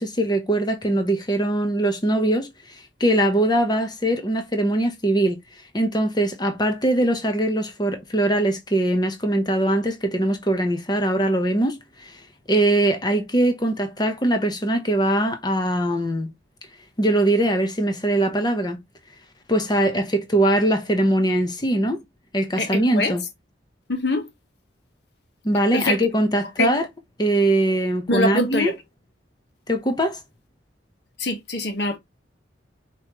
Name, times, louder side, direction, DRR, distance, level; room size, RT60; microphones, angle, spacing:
voice 1, 0.0-2.5 3.0-5.4 5.7-12.2 12.5-16.3 17.0-18.8 19.5-22.0 22.3-23.2 25.4-26.9 27.2-28.7 29.7-30.2, right 1 dB, 20° left, 0.9 m, -21 dB
voice 2, 22.6-23.1 23.9-24.3 25.7-26.0 26.6-26.7 28.1-28.7 31.2-32.0, left 2 dB, 65° left, 1.3 m, -23 dB
5.4 x 3.0 x 3.0 m
head